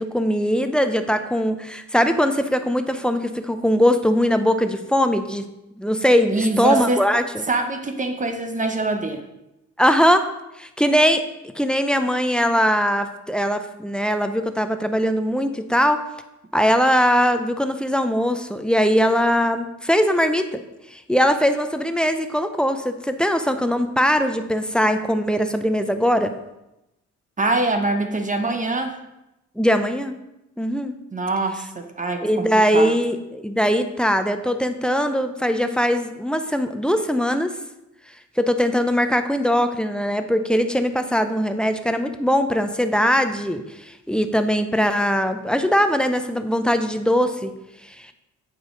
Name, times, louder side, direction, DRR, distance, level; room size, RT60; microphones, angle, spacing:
voice 1, 0.0-5.5 5.8-7.4 9.8-10.3 10.6-11.2 11.6-16.0 16.5-20.6 20.9-26.3 29.6-30.2 30.6-31.0 32.2-37.5 38.4-47.5, equal, 5° left, 8 dB, 0.5 m, -21 dB
voice 2, 6.3-7.0 7.5-9.2 27.4-29.0 31.1-32.9, right 2 dB, 25° right, 6 dB, 0.9 m, -24 dB
8.0 x 5.2 x 3.8 m, 0.91 s
cardioid pair, 90°, 30 cm